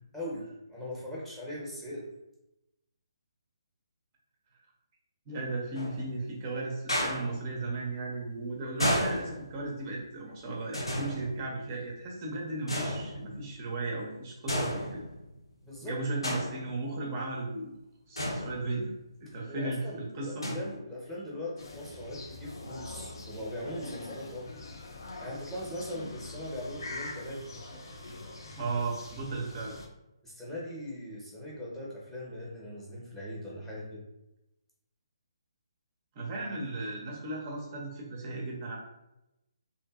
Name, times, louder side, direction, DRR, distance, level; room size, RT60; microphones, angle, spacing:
voice 1, 0.1-2.1 15.6-16.0 19.5-24.5 25.2-27.5 30.2-34.0, left 1 dB, 5° left, -6 dB, 0.7 m, -40 dB
voice 2, 5.3-15.0 15.8-17.7 18.1-18.9 19.2-20.5 28.6-29.8 36.2-38.8, right 2 dB, 30° right, -2 dB, 0.5 m, -35 dB
sound 1, 5.7-6.2 6.9-7.5 8.8-9.8 10.7-11.8 12.7-13.5 14.5-15.3 16.2-16.9 18.2-19.0 20.4-20.8, equal, 85° left, 0.8 m, -33 dB
sound 2, 21.6-29.9, left 2 dB, 60° left, 0.5 m, -44 dB
2.6 x 2.5 x 2.3 m, 0.92 s
figure-of-eight pair, 145°, 3 cm